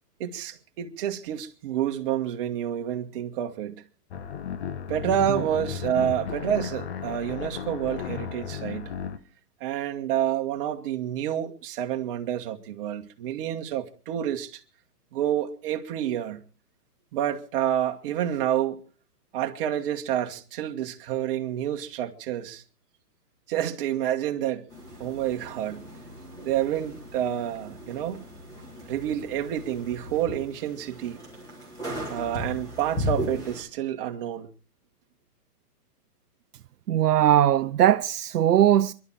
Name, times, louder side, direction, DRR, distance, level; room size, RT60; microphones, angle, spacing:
voice 1, 0.2-3.8 4.9-8.9 9.6-14.6 15.1-16.4 17.1-18.8 19.3-22.6 23.5-24.7 25.0-25.8 26.4-28.2 28.9-31.2 32.1-34.5, right 10 dB, 35° right, 1.7 m, -29 dB
sound 1, 4.1-9.2, left 8 dB, 40° left, 1.1 m, -34 dB
sound 2, 24.7-33.6, equal, 10° left, 3.8 m, -37 dB
voice 2, 36.9-38.9, right 11 dB, 75° right, 0.7 m, -20 dB
27.0 x 12.0 x 4.2 m
hypercardioid pair, 150°, 47 cm